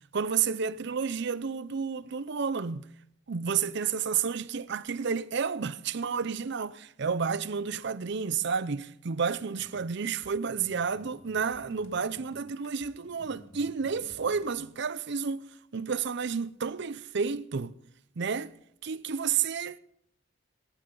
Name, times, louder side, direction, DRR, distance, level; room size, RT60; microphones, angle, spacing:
voice 1, 0.1-2.9 3.3-15.4 15.7-17.7 18.2-18.5 18.8-19.8, right 6 dB, 60° right, 0.6 m, -31 dB
sound 1, 9.6-14.7, equal, 85° left, 1.6 m, -54 dB
18.5 x 14.5 x 3.9 m
head